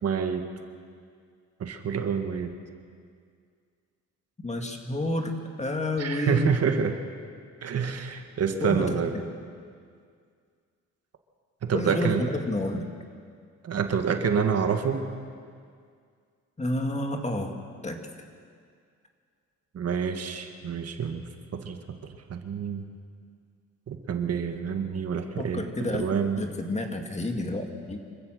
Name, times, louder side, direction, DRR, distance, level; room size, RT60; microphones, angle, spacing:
voice 1, 0.0-0.5 1.6-2.5 6.0-6.9 7.6-9.2 11.6-12.3 13.6-15.0 19.7-21.2 21.5-22.8 23.9-26.4, right 6 dB, 55° right, 6 dB, 1.7 m, -27 dB
voice 2, 4.4-6.5 8.6-8.9 11.7-12.9 16.6-17.6 17.8-18.0 25.4-26.1 26.4-28.0, left 1 dB, 20° left, 4 dB, 2.3 m, -30 dB
25.5 x 15.5 x 6.5 m, 2.2 s
cardioid pair, 90°, 30 cm